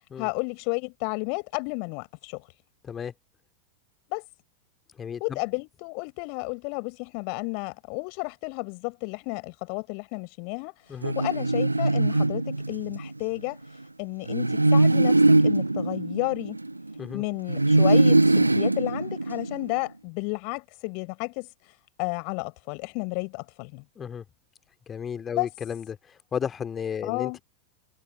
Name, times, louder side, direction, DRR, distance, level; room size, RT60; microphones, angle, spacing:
voice 1, 0.2-2.4 4.1-4.2 5.2-10.7 11.2-13.6 14.0-16.6 17.1-21.5 22.0-23.8 25.3-25.5 27.0-27.4, left 40 dB or more, 45° left, 5.2 m, -32 dB
voice 2, 5.0-5.4 10.9-11.1 17.0-17.2 24.0-24.2 24.9-26.0 26.3-27.4, left 7 dB, 20° left, 2.3 m, -33 dB
sound 1, 11.0-13.1 14.3-17.0 17.5-19.7, right 2 dB, 85° right, 1.1 m, -21 dB
figure-of-eight pair, 90°, 0 cm